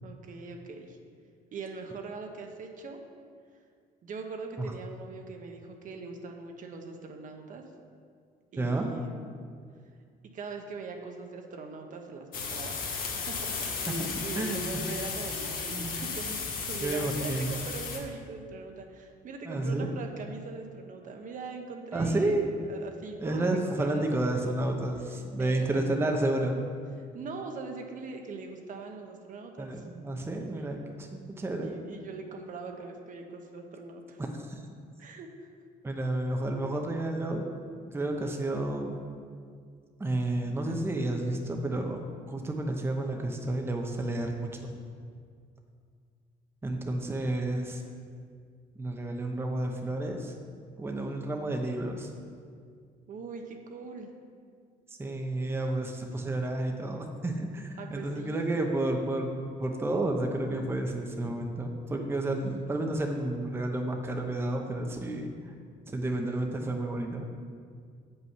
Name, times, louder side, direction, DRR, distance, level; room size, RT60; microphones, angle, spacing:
voice 1, 0.0-1.0 1.5-3.0 4.0-7.6 8.5-9.4 10.3-12.9 13.3-24.8 25.4-26.0 27.1-29.8 30.3-30.7 31.6-34.2 35.0-35.3 53.1-54.1 57.8-58.4, right 4 dB, 50° right, 3 dB, 0.9 m, -41 dB
voice 2, 8.6-8.9 14.0-14.6 15.7-16.0 16.8-17.5 19.4-19.9 21.9-22.4 23.2-26.6 29.6-31.7 34.2-34.6 35.8-37.5 37.9-39.0 40.0-42.0 42.3-44.6 46.6-47.8 48.8-50.3 50.8-52.1 55.0-59.3 59.6-65.3 65.9-67.3, right 2 dB, 15° right, 2 dB, 0.7 m, -31 dB
sound 1, 12.3-18.0, left 5 dB, 55° left, 1.3 m, -35 dB
7.6 x 5.6 x 5.6 m, 2.1 s
cardioid pair, 110°, 17 cm